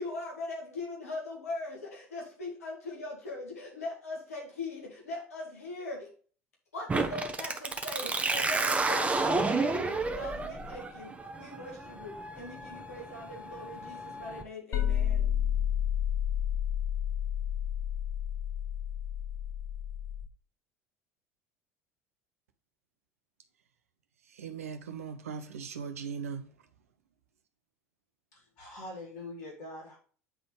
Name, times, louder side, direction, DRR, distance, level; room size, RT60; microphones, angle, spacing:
voice 1, 0.0-6.1 6.7-15.3, left 2 dB, 80° left, 2.0 m, -40 dB
sound 1, 6.9-14.4, right 3 dB, 15° right, 1.2 m, -31 dB
sound 2, 14.7-20.3, left 9 dB, 40° left, 1.2 m, -31 dB
voice 2, 24.4-26.4, right 6 dB, 75° right, 0.9 m, -39 dB
voice 3, 28.3-30.0, left 2 dB, 60° left, 2.9 m, -44 dB
9.1 x 4.0 x 3.4 m
figure-of-eight pair, 65°, 8 cm